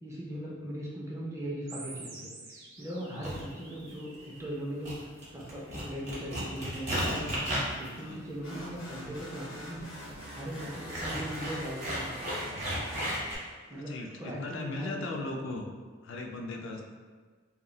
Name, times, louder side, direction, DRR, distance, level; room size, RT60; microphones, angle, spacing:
voice 1, 0.0-9.9 10.3-12.5 13.7-15.2, equal, 15° right, -4 dB, 0.4 m, -39 dB
sound 1, 1.7-4.7, right 3 dB, 80° right, 0.4 m, -48 dB
sound 2, 3.2-3.5 4.2-4.5 4.8-13.4, equal, 35° right, 0.8 m, -35 dB
sound 3, 8.4-13.6, equal, 85° left, 0.8 m, -45 dB
voice 2, 13.9-15.7 16.0-16.8, left 2 dB, 65° left, 3 dB, 0.3 m, -38 dB
2.3 x 2.0 x 3.7 m, 1.5 s
head